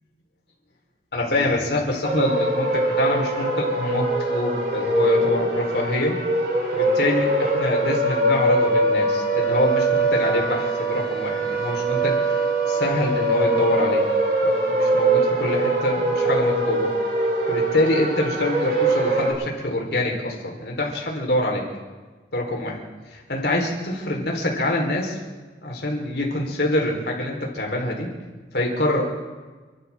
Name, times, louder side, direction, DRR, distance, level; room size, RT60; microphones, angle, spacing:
voice 1, 1.1-6.2 6.7-12.2 12.7-14.0 14.4-16.9 17.5-21.7 22.3-22.8 23.1-25.2 25.6-28.1 28.5-29.1, left 1 dB, 65° left, -1 dB, 4.2 m, -25 dB
sound 1, 2.0-19.3, right 2 dB, 65° right, 5.6 m, -22 dB
30.0 x 13.0 x 3.7 m, 1.3 s
head